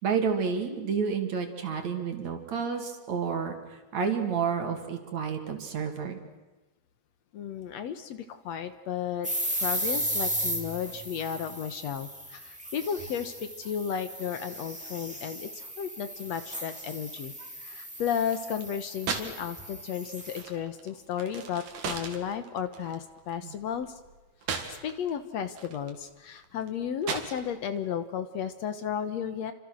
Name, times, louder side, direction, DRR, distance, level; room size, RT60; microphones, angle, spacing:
voice 1, 0.0-3.5 3.9-6.2 17.4-17.5 23.4-23.5, right 6 dB, 65° right, 5 dB, 3.6 m, -30 dB
voice 2, 7.3-9.3 9.6-17.3 17.6-24.0 24.7-29.5, left 8 dB, 65° left, 10 dB, 2.1 m, -34 dB
sound 1, 9.2-20.4, equal, ahead, 2.8 m, -36 dB
sound 2, 18.3-19.5 19.7-25.1 25.5-27.8, right 5 dB, 90° right, 3.8 m, -37 dB
29.5 x 25.5 x 6.4 m, 1.2 s
omnidirectional pair, 3.5 m